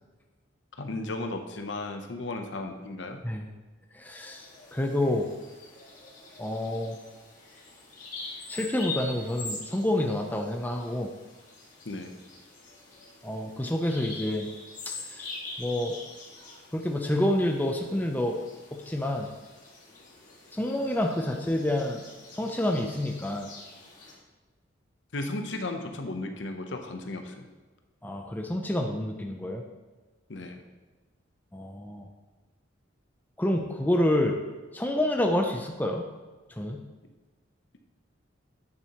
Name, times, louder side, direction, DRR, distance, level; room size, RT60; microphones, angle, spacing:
voice 1, 0.8-3.2 11.8-12.1 25.1-27.5 30.3-30.6, left 2 dB, 70° left, 5 dB, 0.8 m, -35 dB
voice 2, 3.9-5.3 6.4-7.0 8.5-11.1 13.2-14.5 14.9-15.3 15.6-16.0 16.7-18.4 18.7-19.3 20.5-23.5 28.0-29.6 31.5-32.1 33.4-34.4 34.7-36.1 36.6-36.8, left 1 dB, 10° left, 2 dB, 0.5 m, -28 dB
Bird vocalization bird call bird song, 4.2-24.2, left 3 dB, 40° left, 1.8 m, -44 dB
9.0 x 6.7 x 3.0 m, 1.3 s
head